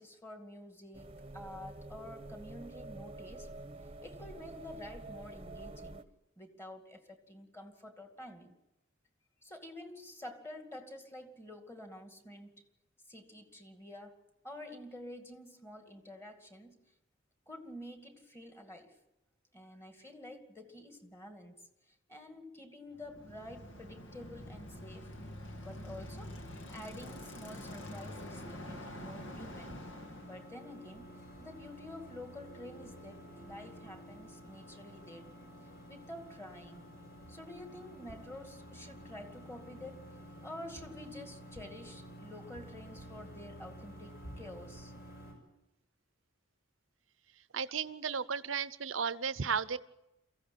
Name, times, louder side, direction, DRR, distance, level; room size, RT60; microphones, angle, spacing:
voice 1, 0.0-3.5 4.0-8.5 9.4-12.6 13.1-16.8 17.5-19.0 19.5-25.1 25.6-29.8 30.2-31.1 31.4-35.3 35.9-36.9 37.3-44.9, left 1 dB, 15° left, 5 dB, 2.3 m, -49 dB
sound 1, 0.9-6.0, right 2 dB, 30° right, 1.0 m, -48 dB
Bicycle, 22.9-30.5, left 1 dB, 70° left, 2.1 m, -46 dB
sound 2, 26.9-45.3, equal, 55° left, 7.2 m, -51 dB
voice 2, 47.5-49.8, right 6 dB, 80° right, 15 dB, 0.7 m, -34 dB
23.0 x 15.5 x 8.7 m, 0.93 s
head